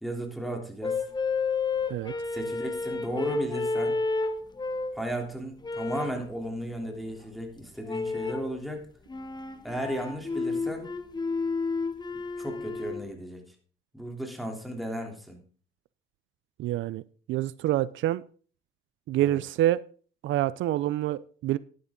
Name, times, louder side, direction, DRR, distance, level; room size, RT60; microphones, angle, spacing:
voice 1, 0.0-1.0 2.3-4.0 4.9-8.9 9.6-10.9 12.4-13.4 13.9-15.4 19.2-19.4, equal, ahead, 3.2 m, -35 dB
sound 1, 0.8-5.0 5.6-6.2 7.8-8.5 9.1-13.0, left 4 dB, 20° left, 1.1 m, -31 dB
voice 2, 16.6-17.0 17.3-18.2 19.1-19.8 20.2-21.6, right 14 dB, 80° right, 0.4 m, -27 dB
11.0 x 11.0 x 3.8 m
cardioid pair, 90°, 20 cm